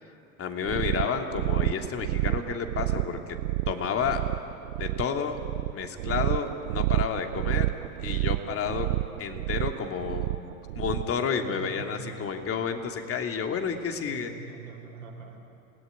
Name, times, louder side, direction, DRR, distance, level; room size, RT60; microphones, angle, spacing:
voice 1, 0.4-3.2 3.7-4.2 4.8-5.4 5.7-7.7 8.0-8.9 9.2-10.3 10.7-14.3, left 6 dB, 30° left, 4 dB, 2.9 m, -30 dB
sound 1, 0.7-11.2, right 19 dB, 55° right, 0.6 m, -29 dB
voice 2, 11.5-12.1 14.1-15.4, right 5 dB, 80° right, 1 dB, 5.4 m, -43 dB
28.5 x 18.5 x 9.8 m, 2.6 s
hypercardioid pair, 90°, 42 cm